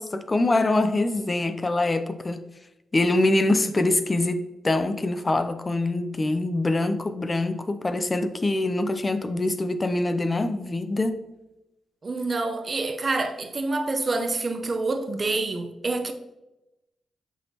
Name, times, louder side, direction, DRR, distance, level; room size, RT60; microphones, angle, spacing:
voice 1, 0.0-2.4 2.9-11.2, left 2 dB, 35° left, 0.5 m, -24 dB
voice 2, 12.0-16.1, right 3 dB, 45° right, 0.7 m, -27 dB
8.1 x 4.3 x 2.9 m
cardioid pair, 55°, 0 cm